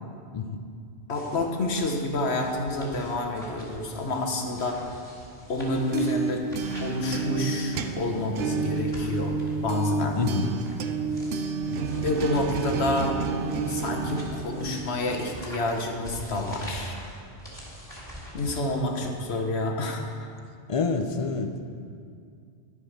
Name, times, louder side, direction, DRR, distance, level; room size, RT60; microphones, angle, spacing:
voice 1, 1.1-4.8 5.5-6.4 6.7-9.3 9.6-10.2 12.0-13.2 13.7-17.0 18.3-20.0, left 2 dB, 70° left, 2 dB, 1.4 m, -28 dB
sound 1, 1.1-19.3, equal, 5° left, 3.0 m, -44 dB
sound 2, 5.6-15.3, right 5 dB, 70° right, 0.9 m, -30 dB
voice 2, 10.1-10.6 20.7-21.6, left 4 dB, 40° left, 7 dB, 0.6 m, -27 dB
12.0 x 5.4 x 6.5 m, 2.3 s
omnidirectional pair, 1.1 m